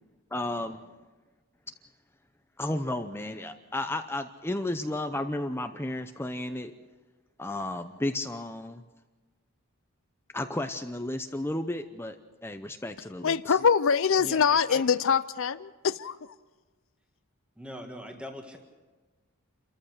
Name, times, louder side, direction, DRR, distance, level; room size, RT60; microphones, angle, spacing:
voice 1, 0.3-0.8 2.6-6.7 7.4-8.8 10.3-12.2 12.4-13.6, left 1 dB, 10° left, 8 dB, 0.7 m, -33 dB
voice 2, 13.2-16.2, left 6 dB, 60° left, 14 dB, 0.5 m, -24 dB
voice 3, 14.2-14.8 17.6-18.6, equal, 5° right, 3 dB, 1.7 m, -41 dB
29.0 x 14.5 x 6.6 m, 1.3 s
head